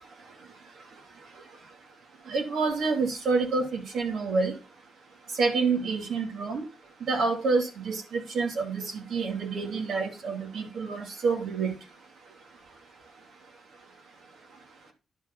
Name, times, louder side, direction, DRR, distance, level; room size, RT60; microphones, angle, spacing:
voice 1, 2.3-4.5 5.4-6.6 7.1-11.7, right 4 dB, 75° right, 3 dB, 2.6 m, -28 dB
11.0 x 4.9 x 5.5 m, 0.30 s
cardioid pair, 75°, 0 cm